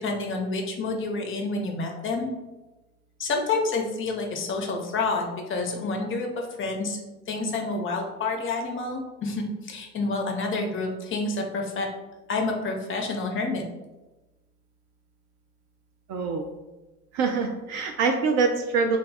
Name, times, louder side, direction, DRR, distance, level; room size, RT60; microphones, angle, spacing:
voice 1, 0.0-2.3 3.2-7.0 7.3-11.9 12.3-13.6, left 3 dB, 30° left, 2 dB, 0.7 m, -28 dB
voice 2, 16.1-16.4 17.1-19.0, right 4 dB, 40° right, 4 dB, 0.4 m, -24 dB
3.4 x 2.2 x 4.0 m, 1.1 s
figure-of-eight pair, 70°, 44 cm